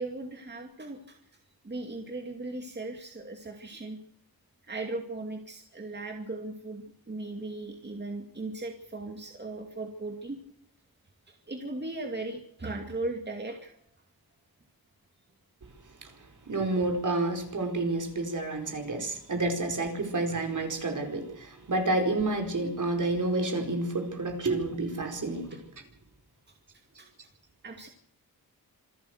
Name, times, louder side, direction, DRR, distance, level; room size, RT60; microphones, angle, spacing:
voice 1, 0.0-4.0 4.6-10.4 11.3-13.7 25.5-25.6 27.0-27.1 27.6-27.9, right 2 dB, 30° right, 3 dB, 2.4 m, -38 dB
voice 2, 16.4-25.6, right 2 dB, 55° right, 4 dB, 4.8 m, -29 dB
26.5 x 12.5 x 8.1 m, 0.73 s
wide cardioid pair, 120°, 37 cm